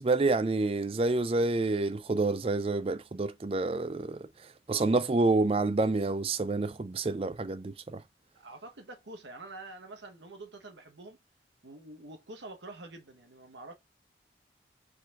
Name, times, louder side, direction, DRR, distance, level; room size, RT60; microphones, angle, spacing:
voice 1, 0.0-4.2 4.7-8.0, right 3 dB, 30° right, 0.4 m, -28 dB
voice 2, 8.3-11.2 11.6-13.7, right 2 dB, 85° right, 1.1 m, -46 dB
4.8 x 4.0 x 2.4 m
head